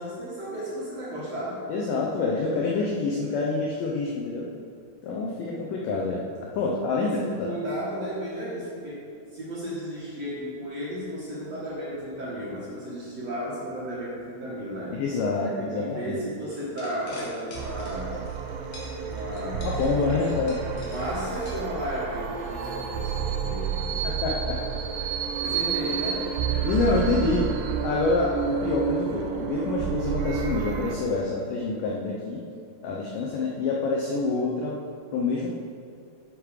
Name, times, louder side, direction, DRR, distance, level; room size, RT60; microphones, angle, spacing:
voice 1, 0.0-1.6 7.0-9.0 9.3-15.0 15.4-18.2 19.0-20.3 20.8-24.0 25.4-26.3, equal, 55° right, -8 dB, 2.0 m, -34 dB
voice 2, 1.7-4.5 5.0-7.5 14.9-16.2 19.6-20.6 24.0-24.6 26.6-27.5 27.8-32.4 32.8-34.8 35.1-35.5, left 3 dB, 85° left, -2 dB, 1.9 m, -27 dB
sound 1, 16.5-18.4 18.7-22.2, left 2 dB, 60° left, 3.0 m, -45 dB
sound 2, 17.5-31.0, right 7 dB, 85° right, 2.6 m, -30 dB
10.5 x 5.1 x 4.9 m, 2.4 s
omnidirectional pair, 4.8 m